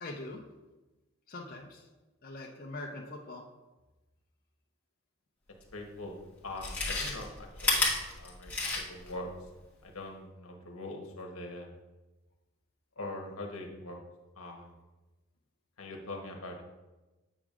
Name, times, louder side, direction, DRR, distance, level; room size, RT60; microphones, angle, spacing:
voice 1, 0.0-0.4 1.3-1.9 2.2-3.4, left 2 dB, 40° left, -2 dB, 0.6 m, -42 dB
voice 2, 5.7-6.2 6.4-7.9 8.2-8.5 8.9-9.3 9.8-11.7 13.0-14.0 14.3-14.8 15.8-16.6, left 2 dB, 75° left, 2 dB, 1.1 m, -42 dB
Chewing mastication, 5.7-5.8 6.5-9.1 9.5-9.6, left 2 dB, 5° left, 1.2 m, -31 dB
8.7 x 5.9 x 2.5 m, 1.1 s
head